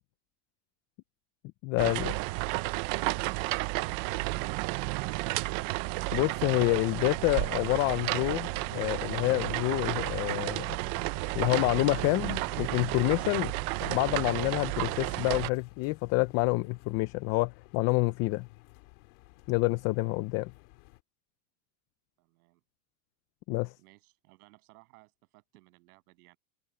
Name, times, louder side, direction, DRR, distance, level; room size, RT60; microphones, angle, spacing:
voice 1, 1.6-2.2 6.1-10.8 11.3-13.5 13.8-18.5 19.5-20.5 23.5-23.7, left 22 dB, 35° left, 0.5 m, -28 dB
sound 1, 1.8-15.5, right 22 dB, 45° right, 0.7 m, -32 dB
sound 2, 6.2-21.0, left 27 dB, 65° left, 2.5 m, -55 dB
voice 2, 22.2-22.6 23.8-26.4, right 24 dB, 70° right, 8.0 m, -60 dB
supercardioid pair, 160°, 45 cm